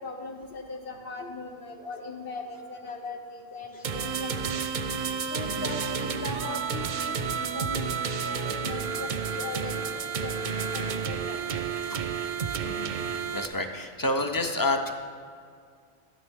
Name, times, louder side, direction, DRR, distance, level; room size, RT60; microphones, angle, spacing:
voice 1, 0.0-4.6 5.3-11.6, left 2 dB, 60° left, 1 dB, 1.1 m, -39 dB
sound 1, 3.8-13.5, right 6 dB, 55° right, 0.6 m, -31 dB
voice 2, 13.3-14.9, left 2 dB, 30° left, 6 dB, 0.4 m, -29 dB
12.5 x 10.0 x 3.6 m, 2.2 s
omnidirectional pair, 1.1 m